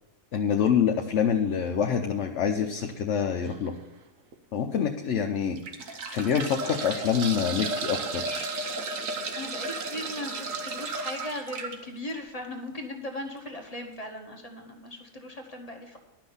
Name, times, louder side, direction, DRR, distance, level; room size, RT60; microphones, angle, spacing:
voice 1, 0.3-3.7 4.5-5.6 5.9-8.5, left 7 dB, 65° left, 4 dB, 1.0 m, -26 dB
sound 1, 3.4-3.7 4.3-4.4 5.4-11.8 13.4-13.5 13.7-13.8, right 3 dB, 70° right, 1.4 m, -34 dB
voice 2, 9.3-16.0, left 1 dB, 30° left, 2 dB, 1.3 m, -38 dB
11.5 x 6.0 x 7.0 m, 1.0 s
omnidirectional pair, 1.4 m